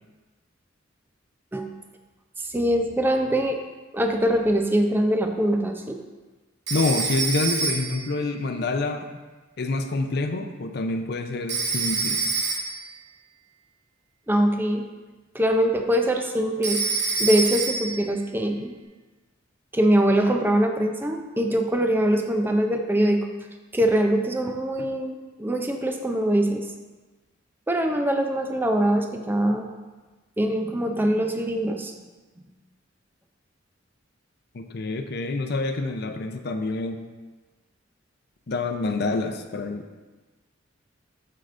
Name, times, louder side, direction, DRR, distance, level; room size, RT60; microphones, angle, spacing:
voice 1, 2.4-3.6 3.9-6.0 14.3-14.8 15.3-16.9 17.2-18.7 19.7-23.3 23.7-26.6 27.7-29.7 30.4-31.9, right 1 dB, 10° right, 4 dB, 0.4 m, -23 dB
voice 2, 6.7-9.1 9.6-12.2 34.5-37.0 38.5-39.8, left 3 dB, 55° left, 6 dB, 0.5 m, -27 dB
Telephone, 6.7-8.1 11.5-12.9 16.6-18.0, right 4 dB, 60° right, 1.0 m, -26 dB
7.4 x 6.6 x 2.5 m, 1.2 s
head